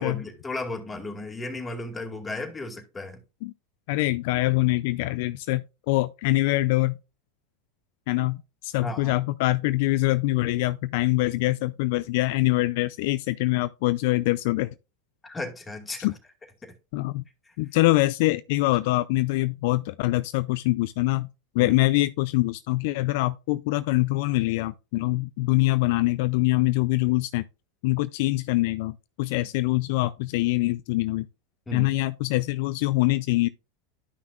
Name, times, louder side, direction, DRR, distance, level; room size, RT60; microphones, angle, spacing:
voice 1, 0.0-3.2 8.8-9.2 15.2-16.1 16.6-16.7 17.5-17.6 21.6-21.7 31.7-31.9, left 2 dB, 15° left, 2.3 m, -34 dB
voice 2, 3.9-7.0 8.1-8.4 8.6-14.7 16.0-16.1 16.9-17.2 17.6-21.3 21.5-27.4 27.8-31.3 31.7-33.5, left 19 dB, 65° left, 0.4 m, -24 dB
12.5 x 5.8 x 2.4 m
hypercardioid pair, 100°, 0 cm